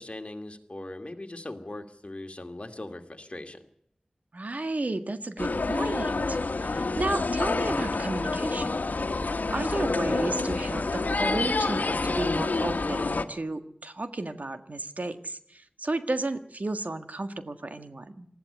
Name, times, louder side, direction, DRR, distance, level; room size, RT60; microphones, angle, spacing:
voice 1, 0.0-3.6, left 1 dB, 45° left, 5 dB, 2.4 m, -40 dB
voice 2, 4.3-8.8 9.5-18.3, right 2 dB, 65° right, 9 dB, 1.6 m, -33 dB
sound 1, 5.4-13.2, left 3 dB, 85° left, 1.3 m, -28 dB
19.5 x 14.5 x 9.9 m, 0.72 s
wide cardioid pair, 55°, 3 cm